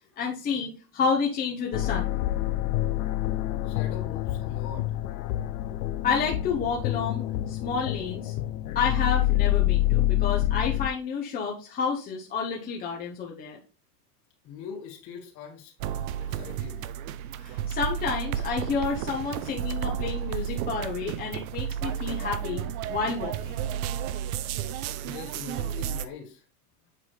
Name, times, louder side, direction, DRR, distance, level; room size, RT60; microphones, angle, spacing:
voice 1, 0.2-2.1 6.0-8.3 8.7-13.6 17.4-22.6 22.9-23.7, left 5 dB, 20° left, -1 dB, 0.7 m, -30 dB
sound 1, 1.7-10.9, left 15 dB, 65° left, 0.6 m, -27 dB
voice 2, 3.6-4.9 14.4-15.7 16.2-16.9 23.7-23.8 25.0-26.4, left 7 dB, 40° left, 0 dB, 2.1 m, -42 dB
sound 2, 15.8-26.0, right 9 dB, 65° right, 0.6 m, -32 dB
7.4 x 3.9 x 3.3 m, 0.36 s
supercardioid pair, 140°, 47 cm